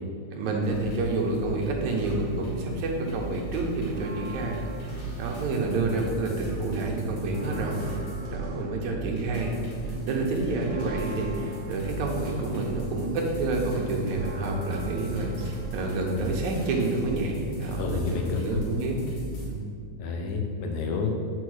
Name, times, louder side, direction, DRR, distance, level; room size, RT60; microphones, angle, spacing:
voice 1, 0.3-7.9 8.3-9.5 9.8-19.0 19.4-19.6, right 2 dB, 80° right, 0 dB, 2.2 m, -29 dB
sound 1, 0.6-19.5, right 2 dB, 70° left, 3.1 m, -37 dB
Church bell, 3.8-6.2 6.6-6.7 7.0-17.0, right 1 dB, 50° right, 1.9 m, -45 dB
voice 2, 17.8-18.6 20.0-21.1, left 5 dB, 90° left, 2 dB, 2.3 m, -29 dB
6.1 x 4.6 x 6.3 m, 2.3 s
omnidirectional pair, 3.4 m